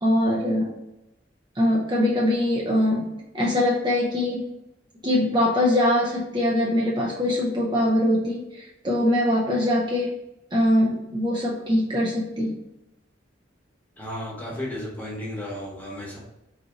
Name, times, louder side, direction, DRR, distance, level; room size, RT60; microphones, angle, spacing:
voice 1, 0.0-0.8 1.6-4.5 5.0-10.1 10.5-12.5, left 1 dB, 25° right, -3 dB, 0.6 m, -22 dB
voice 2, 14.0-16.2, left 1 dB, 10° left, -4 dB, 1.2 m, -33 dB
4.2 x 2.8 x 3.7 m, 0.93 s
head